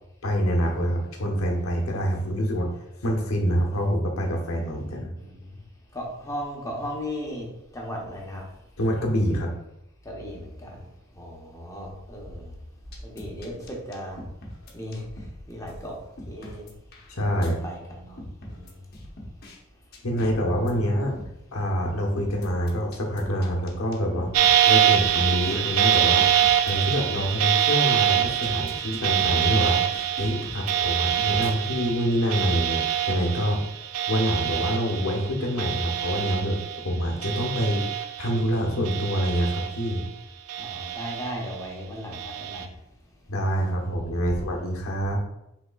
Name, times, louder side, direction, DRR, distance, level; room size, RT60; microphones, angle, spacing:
voice 1, 0.2-2.7 3.0-5.1 8.8-9.5 17.1-17.6 20.0-21.1 21.5-24.3 24.7-26.3 26.6-29.8 30.2-33.6 34.1-40.1 43.3-45.2, equal, 90° left, 0 dB, 1.0 m, -26 dB
voice 2, 5.2-5.6 5.9-7.5 7.7-8.4 10.0-10.9 11.1-12.6 13.0-14.2 14.7-16.0 16.3-16.7 17.4-18.8 40.6-42.7, equal, 15° left, -2 dB, 1.0 m, -36 dB
sound 1, 12.9-15.4 15.7-15.8 16.2-17.5 18.2-19.6 19.9-20.7 21.2-21.4 22.2-25.6 25.9-27.4 27.7-27.8 28.2-31.5, left 1 dB, 50° left, 1.0 m, -42 dB
sound 2, 24.3-36.9 37.2-38.4 38.8-40.1 40.5-41.5 42.1-42.6, right 10 dB, 85° right, 0.4 m, -25 dB
5.7 x 3.5 x 2.4 m, 0.85 s
head